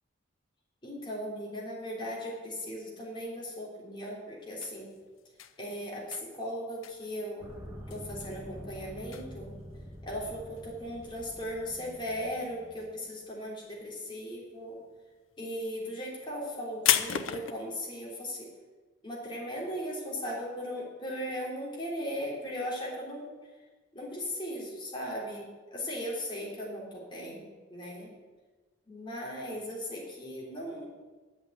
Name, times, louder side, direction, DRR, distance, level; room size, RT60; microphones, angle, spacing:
voice 1, 0.8-4.9 5.6-7.5 7.9-9.6 10.0-14.8 15.4-18.5 19.0-23.3 23.9-28.1 28.9-30.9, equal, 25° left, -4 dB, 3.3 m, -38 dB
sound 1, 4.4-12.4 12.7-13.3 13.6-17.5, left 10 dB, 85° left, 0.7 m, -34 dB
sound 2, 7.4-12.9, equal, 10° right, 1.7 m, -46 dB
11.5 x 8.0 x 8.0 m, 1.3 s
head